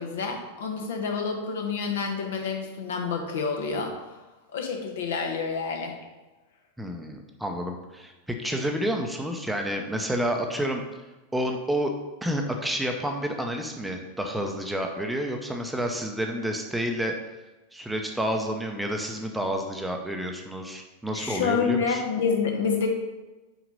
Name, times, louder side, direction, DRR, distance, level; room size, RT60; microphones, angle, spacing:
voice 1, 0.0-3.9 4.5-6.0 21.1-22.9, left 5 dB, 60° left, 2 dB, 1.3 m, -28 dB
voice 2, 6.8-10.8 11.3-11.9 12.2-17.1 17.7-22.0, equal, 5° right, 3 dB, 0.8 m, -29 dB
5.8 x 4.9 x 5.4 m, 1.1 s
figure-of-eight pair, 90°, 0 cm